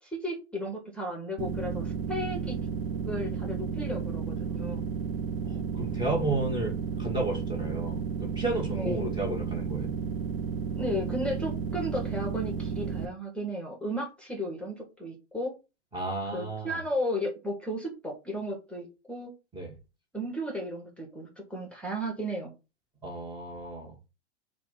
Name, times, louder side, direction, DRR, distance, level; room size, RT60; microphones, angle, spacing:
voice 1, 0.0-2.6 3.0-4.8 8.7-9.1 10.8-15.5 16.3-19.3 20.1-22.5, equal, 5° left, 1.3 m, -34 dB
sound 1, 1.4-13.0, right 5 dB, 50° right, 0.8 m, -33 dB
voice 2, 5.4-9.9 15.9-16.8 19.5-19.7 23.0-23.9, right 2 dB, 15° right, 1.3 m, -32 dB
4.5 x 2.4 x 3.9 m
hypercardioid pair, 110°, 36 cm